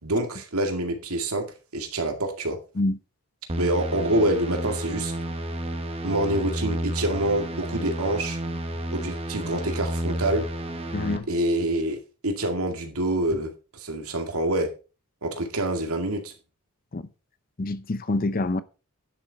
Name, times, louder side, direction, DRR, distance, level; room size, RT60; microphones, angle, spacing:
voice 1, 0.0-2.6 3.6-5.1 6.0-8.4 8.9-10.5 11.3-14.7 15.2-16.3, right 1 dB, 75° right, 2.2 m, -26 dB
sound 1, 3.5-11.2, right 1 dB, 25° right, 1.2 m, -31 dB
voice 2, 10.9-11.3 16.9-17.1 17.6-18.6, left 2 dB, 40° left, 0.6 m, -26 dB
10.5 x 6.9 x 4.6 m
head